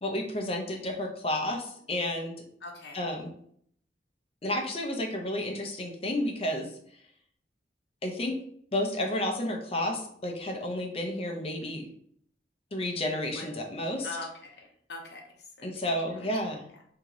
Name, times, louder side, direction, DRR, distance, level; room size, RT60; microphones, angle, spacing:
voice 1, 0.0-2.4 2.9-3.3 4.4-6.7 8.0-8.4 8.7-11.9 12.7-14.2 15.6-16.6, left 1 dB, 35° left, 2 dB, 0.6 m, -31 dB
voice 2, 2.6-3.0 13.2-13.5 14.0-15.2 15.6-16.3, left 2 dB, 65° left, 1 dB, 0.8 m, -42 dB
3.0 x 2.8 x 3.6 m, 0.64 s
head